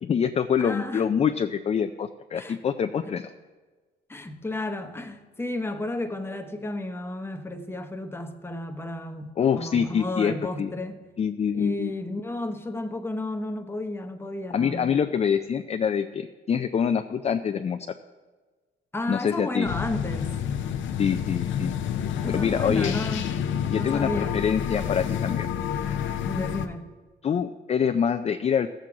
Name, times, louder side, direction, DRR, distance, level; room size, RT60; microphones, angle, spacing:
voice 1, 0.0-3.3 9.4-10.7 11.2-11.9 14.5-17.8 19.1-19.7 21.0-21.7 22.3-22.9 23.7-25.5 27.2-28.7, left 7 dB, 35° left, 0.4 m, -25 dB
voice 2, 0.6-1.1 2.3-2.6 3.0-3.2 4.1-11.1 11.5-14.9 18.9-20.3 22.2-23.3 23.7-24.4 26.2-26.9, left 2 dB, 10° left, 0.9 m, -32 dB
sound 1, 19.6-26.7, left 8 dB, 75° left, 0.7 m, -29 dB
14.0 x 7.6 x 3.7 m
cardioid pair, 90°, 20 cm